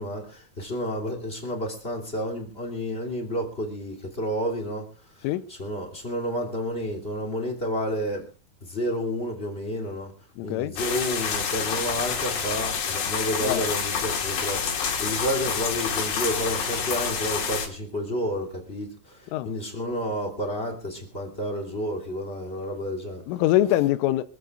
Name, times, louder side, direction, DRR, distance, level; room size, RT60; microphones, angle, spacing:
voice 1, 0.0-4.9 5.1-8.2 8.6-10.1 10.4-23.2, equal, 20° left, 1.8 m, -30 dB
voice 2, 10.4-10.7 13.4-13.6 19.3-19.5 23.3-24.2, left 14 dB, 80° left, 3.3 m, -23 dB
sound 1, 10.8-17.7, left 6 dB, 60° left, 4.2 m, -28 dB
26.0 x 15.0 x 2.5 m
omnidirectional pair, 5.8 m